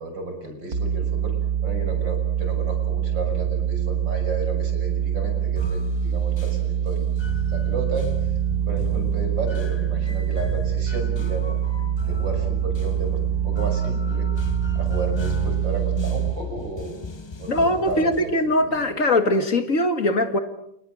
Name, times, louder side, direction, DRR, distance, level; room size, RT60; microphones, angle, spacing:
voice 1, 0.0-1.4 1.6-8.3 8.7-11.6 12.1-14.3 14.8-17.0 17.4-18.3 18.6-18.9, right 2 dB, 80° right, 4 dB, 7.2 m, -33 dB
sound 1, 0.7-16.3, right 9 dB, 55° right, 2.1 m, -25 dB
sound 2, 5.6-18.3, left 3 dB, 20° left, 0.7 m, -35 dB
voice 2, 17.5-20.4, left 1 dB, 45° left, 8 dB, 2.3 m, -21 dB
29.5 x 29.5 x 6.4 m, 0.78 s
omnidirectional pair, 2.0 m